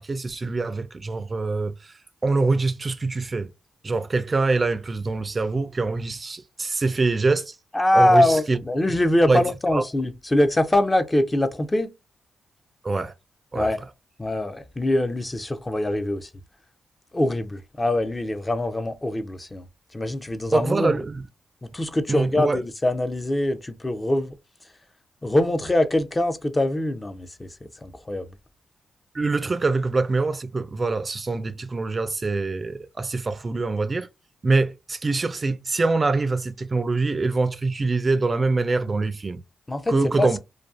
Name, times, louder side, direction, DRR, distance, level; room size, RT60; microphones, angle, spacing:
voice 1, 0.0-1.9 2.2-3.5 3.8-7.6 7.9-8.6 9.3-9.4 9.7-9.8 12.8-13.1 13.5-13.7 20.5-21.2 22.1-22.6 29.1-34.1 34.4-39.4 39.9-40.4, right 3 dB, 40° right, 0.3 m, -24 dB
voice 2, 7.7-11.9 13.5-13.8 14.2-16.3 17.1-19.6 19.9-20.9 21.6-24.3 25.2-27.5 27.8-28.3 39.7-40.3, left 1 dB, 25° left, 0.5 m, -23 dB
2.5 x 2.3 x 2.4 m
supercardioid pair, 55°, 0 cm